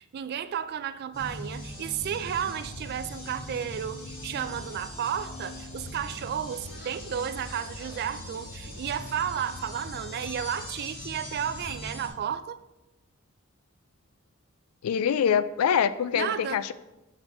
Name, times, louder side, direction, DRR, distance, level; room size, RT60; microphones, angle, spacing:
voice 1, 0.0-12.6 16.1-16.6, right 8 dB, 50° right, 0.3 m, -33 dB
sound 1, 1.1-12.1, left 1 dB, 45° left, 2.0 m, -41 dB
voice 2, 14.8-16.7, left 8 dB, 90° left, 0.4 m, -24 dB
6.0 x 5.4 x 3.5 m
head